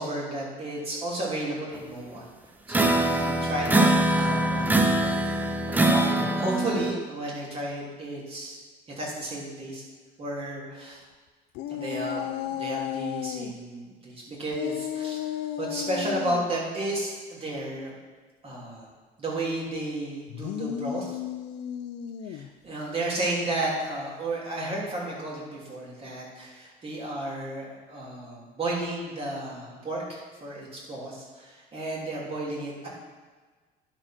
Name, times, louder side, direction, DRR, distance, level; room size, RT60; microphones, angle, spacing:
voice 1, 0.0-2.3 2.8-8.6 9.0-9.8 10.2-11.0 11.7-15.2 15.6-17.9 18.4-18.9 19.2-21.1 22.3-32.9, right 1 dB, 35° right, -4 dB, 3.1 m, -33 dB
sound 1, 2.7-6.9, right 1 dB, 10° right, 0.6 m, -23 dB
sound 2, 11.5-13.5 14.5-16.5 20.3-22.5, left 11 dB, 85° left, 0.5 m, -33 dB
11.0 x 4.5 x 5.9 m, 1.4 s
cardioid pair, 110°, 17 cm